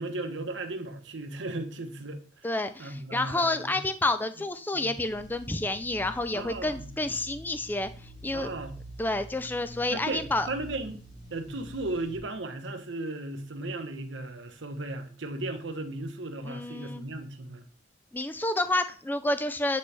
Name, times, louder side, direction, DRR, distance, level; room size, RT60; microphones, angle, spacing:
voice 1, 0.0-2.5 2.8-3.8 4.7-4.9 6.3-6.9 8.3-8.8 9.9-11.0 11.3-17.6, right 2 dB, 70° right, 0.9 m, -36 dB
voice 2, 2.4-8.5 9.0-10.5 16.4-17.0 18.1-19.8, left 2 dB, 10° left, 0.3 m, -29 dB
sound 1, 4.9-12.2, right 1 dB, 30° left, 2.2 m, -46 dB
8.2 x 4.2 x 3.3 m
head